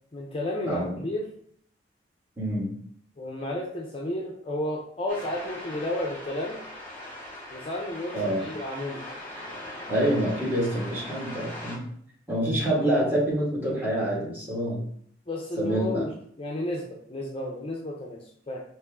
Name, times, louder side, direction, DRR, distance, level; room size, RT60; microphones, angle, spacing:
voice 1, 0.1-1.3 3.2-6.6 7.5-8.1 8.4-9.0 15.3-18.6, left 1 dB, 30° left, -1 dB, 0.5 m, -32 dB
voice 2, 0.6-1.0 2.4-2.8 8.1-8.4 9.9-11.9 12.3-14.9 15.6-16.1, right 1 dB, 10° right, -7 dB, 1.7 m, -26 dB
sound 1, 5.1-11.8, left 1 dB, 10° left, 1.9 m, -40 dB
4.4 x 3.0 x 3.6 m, 0.63 s
head